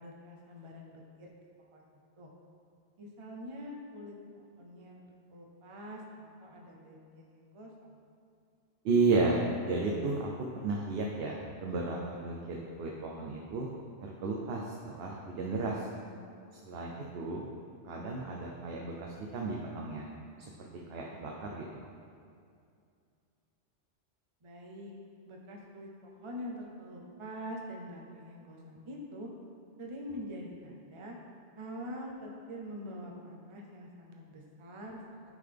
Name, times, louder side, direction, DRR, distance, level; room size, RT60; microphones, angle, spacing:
voice 1, 0.0-1.8 2.2-2.3 3.0-5.0 5.3-8.0 24.4-24.9 25.3-29.3 29.8-31.2 31.6-35.0, equal, 35° right, -1 dB, 0.6 m, -45 dB
voice 2, 8.8-13.7 14.0-15.9 16.6-17.4 17.8-20.0 20.9-21.8, right 3 dB, 65° right, -2 dB, 0.8 m, -33 dB
9.4 x 3.8 x 3.4 m, 2.4 s
omnidirectional pair, 1.2 m